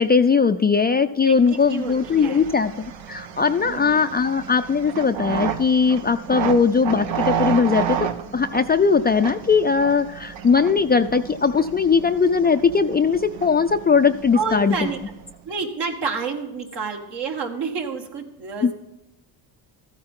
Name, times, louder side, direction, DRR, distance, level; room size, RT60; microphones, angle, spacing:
voice 1, 0.0-14.8 18.6-18.7, left 5 dB, 20° left, 8 dB, 0.4 m, -19 dB
voice 2, 1.2-2.4 3.6-4.0 14.3-15.0 15.4-18.7, right 5 dB, 60° right, 3 dB, 2.0 m, -29 dB
sound 1, 1.5-15.4, right 8 dB, 80° right, 1.1 m, -32 dB
14.0 x 8.9 x 3.7 m, 0.96 s
cardioid pair, 95°, 45 cm